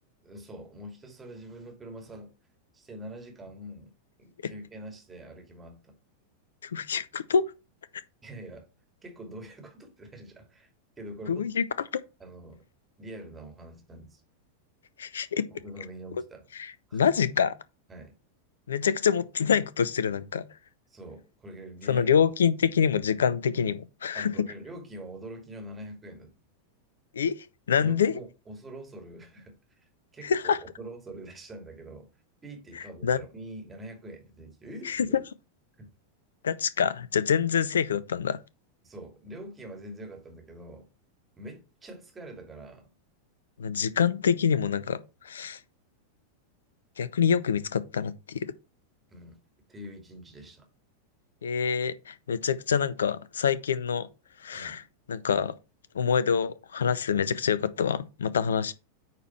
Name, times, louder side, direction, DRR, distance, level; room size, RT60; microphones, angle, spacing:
voice 1, 0.2-2.3 2.7-3.9 4.2-6.0 8.2-8.6 9.0-10.7 11.0-11.6 12.2-12.6 13.0-14.2 15.5-16.5 16.9-17.0 17.9-18.1 20.9-22.1 24.1-26.3 27.8-32.1 32.4-35.2 35.8-35.9 38.8-40.9 41.4-42.9 49.1-49.4 49.7-50.7 54.5-54.8, right 1 dB, 15° right, 2.5 m, -44 dB
voice 2, 6.6-7.4 11.3-11.6 15.0-15.4 16.6-17.5 18.7-20.5 21.9-24.3 27.1-27.3 27.7-28.1 30.2-30.6 33.0-33.2 34.9-35.1 36.4-38.4 43.6-45.6 47.0-48.5 51.4-54.1 54.4-54.8 55.1-55.5 55.9-58.7, left 7 dB, 65° left, 0.6 m, -26 dB
9.0 x 4.6 x 4.4 m
figure-of-eight pair, 90°, 0 cm